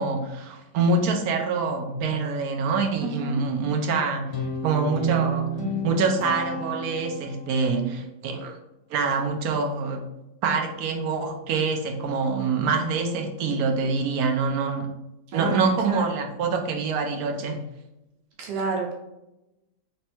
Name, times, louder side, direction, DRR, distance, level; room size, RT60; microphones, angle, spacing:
voice 1, 0.0-4.2 4.6-5.5 5.8-8.5 8.9-10.0 10.4-14.9 15.3-17.6, right 4 dB, 70° right, 3 dB, 1.1 m, -25 dB
voice 2, 3.0-3.4 15.3-16.2 18.4-18.9, right 3 dB, 90° right, -1 dB, 1.4 m, -30 dB
Guitar, 4.3-7.6, right 3 dB, 50° left, 1.2 m, -30 dB
3.4 x 3.2 x 4.3 m, 0.93 s
omnidirectional pair, 1.8 m